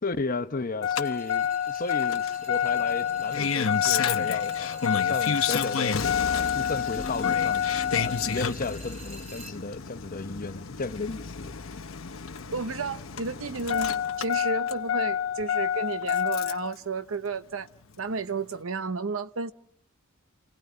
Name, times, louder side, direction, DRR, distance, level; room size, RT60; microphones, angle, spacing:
voice 1, 0.0-6.0 6.3-7.6 7.9-11.5, left 3 dB, 45° left, 0.9 m, -34 dB
Engine starting, 0.8-16.7 18.0-18.1, left 8 dB, 90° left, 0.9 m, -28 dB
sound 1, 1.0-9.5, right 1 dB, 35° right, 4.1 m, -49 dB
sound 2, 7.0-10.8, left 2 dB, 5° left, 2.2 m, -46 dB
voice 2, 12.5-17.7 18.0-19.5, right 4 dB, 85° right, 0.9 m, -32 dB
28.5 x 17.0 x 9.7 m
head